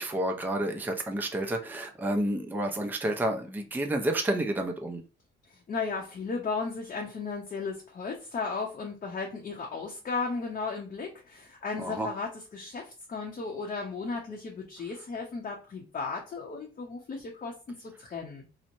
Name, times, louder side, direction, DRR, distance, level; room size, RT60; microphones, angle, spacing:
voice 1, 0.0-5.0 11.8-12.1, right 1 dB, 10° right, 0.5 m, -30 dB
voice 2, 5.5-18.5, left 4 dB, 40° left, 0.7 m, -35 dB
2.9 x 2.1 x 2.6 m
cardioid pair, 90°, 20 cm